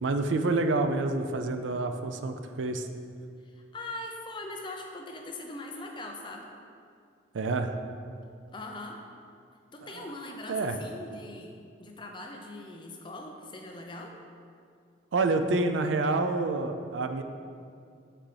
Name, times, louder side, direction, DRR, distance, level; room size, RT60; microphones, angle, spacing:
voice 1, 0.0-2.9 7.3-7.7 9.8-10.1 10.5-10.8 15.1-17.2, right 3 dB, 80° right, 7 dB, 0.4 m, -28 dB
voice 2, 3.4-6.5 8.5-9.0 9.7-11.5 11.8-14.2, left 2 dB, 25° left, 2 dB, 0.5 m, -41 dB
6.8 x 5.8 x 3.3 m, 2.3 s
head